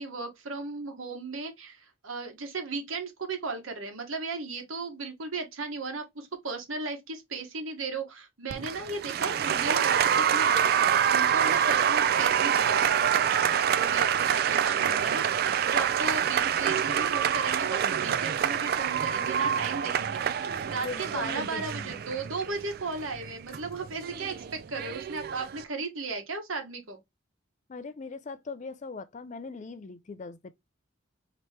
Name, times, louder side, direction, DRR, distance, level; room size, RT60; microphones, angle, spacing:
voice 1, 0.0-13.4 13.8-20.2 20.7-27.0, right 3 dB, 80° right, 1.2 m, -36 dB
Applause, 8.5-25.6, right 8 dB, 50° right, 0.3 m, -26 dB
voice 2, 20.8-22.0 27.7-30.5, left 4 dB, 35° left, 0.4 m, -40 dB
4.2 x 2.9 x 3.3 m
head